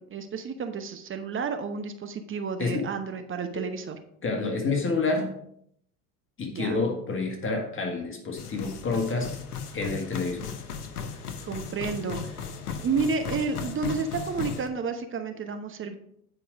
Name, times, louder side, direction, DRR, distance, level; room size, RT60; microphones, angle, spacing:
voice 1, 0.0-4.0 6.5-6.8 11.4-12.4 12.8-16.0, right 5 dB, 25° right, 7 dB, 1.0 m, -31 dB
voice 2, 4.2-5.3 6.4-9.3 9.7-10.4, left 3 dB, 25° left, 3 dB, 1.8 m, -28 dB
sound 1, 8.4-14.7, left 6 dB, 85° left, 0.9 m, -36 dB
9.4 x 5.3 x 5.0 m, 0.71 s
figure-of-eight pair, 70°, 45 cm